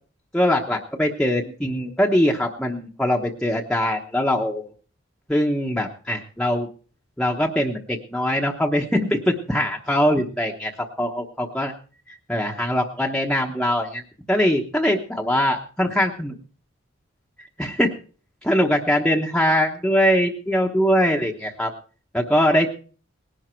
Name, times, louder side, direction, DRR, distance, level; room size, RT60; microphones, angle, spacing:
voice 1, 0.3-4.7 5.3-6.7 7.2-10.7 11.0-11.7 12.3-14.0 14.3-16.3 17.6-17.9 18.4-21.7 22.1-22.7, equal, 5° left, -1 dB, 1.0 m, -22 dB
19.0 x 11.0 x 4.5 m, 0.42 s
head